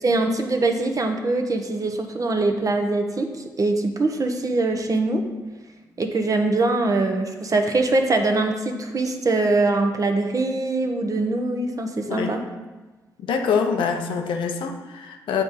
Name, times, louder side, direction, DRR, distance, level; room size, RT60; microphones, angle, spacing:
voice 1, 0.0-3.3 3.6-5.2 6.0-12.4, right 2 dB, 40° right, 5 dB, 0.9 m, -22 dB
voice 2, 13.2-15.4, left 6 dB, 75° left, 5 dB, 0.6 m, -25 dB
7.6 x 3.7 x 4.1 m, 1.2 s
hypercardioid pair, 45°, 8 cm